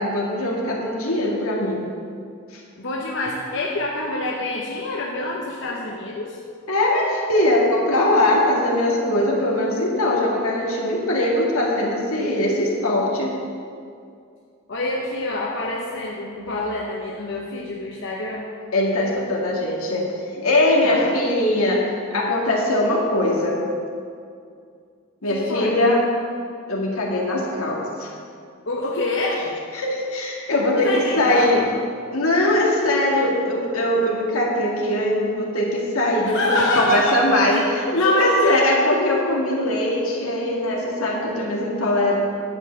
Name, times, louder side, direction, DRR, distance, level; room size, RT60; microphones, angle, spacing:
voice 1, 0.0-1.9 2.5-2.6 6.7-13.3 18.7-20.1 20.3-21.8 22.1-23.6 25.2-26.0 26.7-28.1 29.7-31.8 32.1-42.1, left 1 dB, 85° left, -2 dB, 2.1 m, -21 dB
voice 2, 2.8-6.4 14.7-18.5 20.8-21.2 25.3-25.8 28.7-29.5 30.7-31.7 36.3-37.1 37.5-38.7, left 2 dB, 60° left, -2 dB, 1.0 m, -26 dB
10.5 x 5.5 x 7.4 m, 2.3 s
head